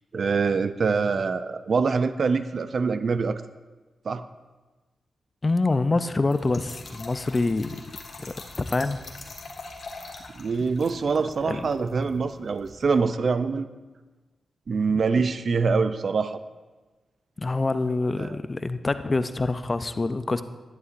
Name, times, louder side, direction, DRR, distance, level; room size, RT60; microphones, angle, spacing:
voice 1, 0.1-3.4 4.0-4.3 10.3-13.7 14.7-16.4 18.2-18.4, right 4 dB, 60° right, 12 dB, 0.4 m, -24 dB
voice 2, 5.4-7.8 8.2-9.0 11.4-11.7 14.9-15.0 17.4-20.4, left 3 dB, 30° left, 11 dB, 0.5 m, -26 dB
Trickle dribble / Fill (with liquid), 6.3-13.0, left 3 dB, 60° left, 1.6 m, -44 dB
11.0 x 11.0 x 2.6 m, 1.2 s
cardioid pair, 65°, 0 cm